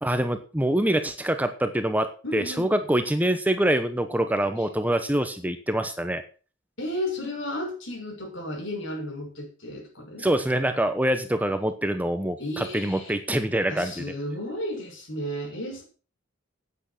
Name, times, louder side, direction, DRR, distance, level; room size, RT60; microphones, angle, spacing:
voice 1, 0.0-6.2 10.2-14.0, right 1 dB, 10° right, 9 dB, 1.0 m, -25 dB
voice 2, 2.2-2.8 6.8-10.3 12.4-13.2 13.7-15.8, left 1 dB, 75° left, 1 dB, 6.4 m, -33 dB
11.0 x 9.1 x 6.0 m, 0.37 s
head